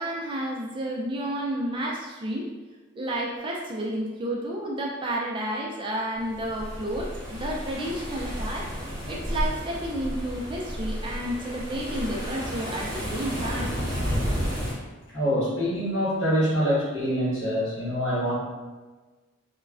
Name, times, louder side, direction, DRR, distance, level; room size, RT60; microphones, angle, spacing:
voice 1, 0.0-2.5 2.9-8.7 9.1-13.7, right 1 dB, 25° right, -2 dB, 0.3 m, -31 dB
sound 1, 6.2-14.7, equal, 5° left, 1.3 m, -32 dB
voice 2, 15.1-18.3, equal, 65° left, -9 dB, 1.3 m, -25 dB
3.1 x 2.2 x 2.3 m, 1.3 s
head